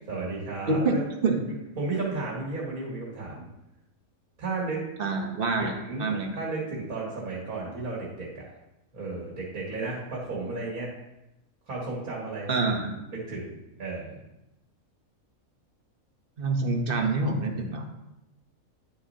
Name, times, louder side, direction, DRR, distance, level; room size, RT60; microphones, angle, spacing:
voice 1, 0.1-1.0 1.5-3.5 4.4-4.9 5.6-6.1 6.3-8.5 8.9-10.9 11.7-14.2, right 3 dB, 80° right, -5 dB, 2.3 m, -34 dB
voice 2, 0.7-1.4 5.0-5.7 6.0-6.3 12.5-12.9 16.4-17.9, right 3 dB, 45° right, 3 dB, 1.1 m, -26 dB
9.9 x 6.6 x 2.8 m, 0.92 s
omnidirectional pair, 1.5 m